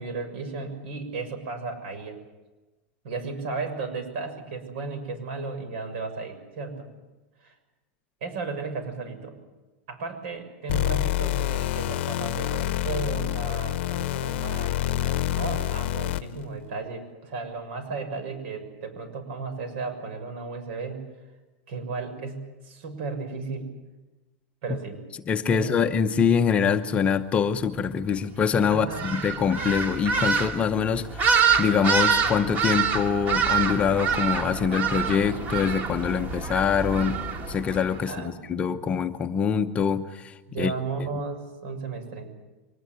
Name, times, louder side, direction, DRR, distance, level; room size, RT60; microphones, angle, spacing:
voice 1, 0.0-2.2 3.0-6.9 7.4-7.5 8.2-9.4 9.9-21.0 21.7-22.4 22.6-23.7 24.6-25.0 25.5-25.9 28.7-29.3 38.0-38.4 40.5-42.3, right 4 dB, 60° right, 9 dB, 6.7 m, -34 dB
sound 1, 10.7-16.4, left 14 dB, 60° left, 0.8 m, -27 dB
voice 2, 25.3-40.7, left 6 dB, 20° left, 7 dB, 0.8 m, -24 dB
sound 2, 28.9-38.0, right 6 dB, 25° right, 2.2 m, -26 dB
24.0 x 19.5 x 9.2 m, 1.1 s
supercardioid pair, 165°, 7 cm